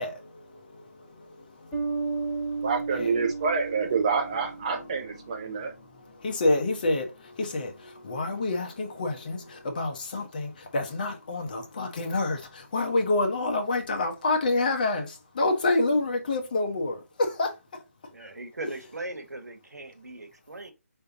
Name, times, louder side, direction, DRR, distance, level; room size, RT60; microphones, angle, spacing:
voice 1, 0.0-3.1 4.7-4.9 5.3-17.8 18.2-18.3, left 2 dB, 30° left, 0.9 m, -29 dB
Bass guitar, 1.7-5.2, right 4 dB, 15° left, 2.2 m, -33 dB
voice 2, 2.6-5.7, right 5 dB, 25° right, 0.5 m, -27 dB
voice 3, 18.1-20.7, right 2 dB, 85° right, 1.3 m, -39 dB
4.9 x 3.4 x 2.8 m
figure-of-eight pair, 165°, 9 cm